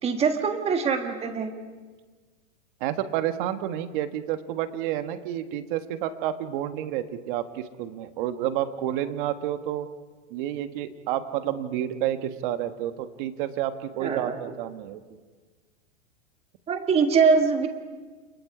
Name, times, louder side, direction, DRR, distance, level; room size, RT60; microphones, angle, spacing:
voice 1, 0.0-1.5 14.0-14.4 16.7-17.7, right 5 dB, 15° right, 6 dB, 1.6 m, -23 dB
voice 2, 2.8-9.9 10.3-15.2, right 11 dB, 40° right, 10 dB, 1.3 m, -30 dB
29.5 x 27.5 x 4.9 m, 1.4 s
supercardioid pair, 160°, 37 cm